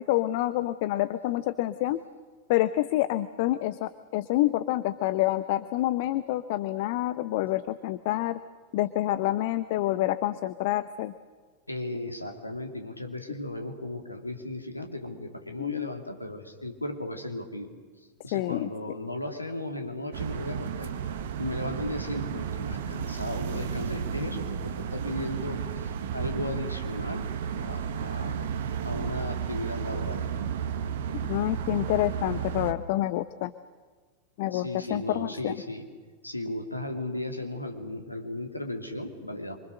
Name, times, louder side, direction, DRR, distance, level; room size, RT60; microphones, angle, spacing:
voice 1, 0.0-2.0 2.5-8.4 8.7-11.1 15.6-15.9 18.3-18.7 31.2-33.5 34.4-35.5, left 15 dB, 50° left, 14 dB, 0.8 m, -27 dB
voice 2, 11.7-17.7 18.0-20.9 21.4-28.5 28.8-30.2 34.5-35.9 36.2-39.6, left 1 dB, 85° left, 4 dB, 2.8 m, -36 dB
sound 1, 20.1-32.7, right 7 dB, 55° right, 1.5 m, -33 dB
28.0 x 25.0 x 6.6 m, 1.5 s
figure-of-eight pair, 90°, 0 cm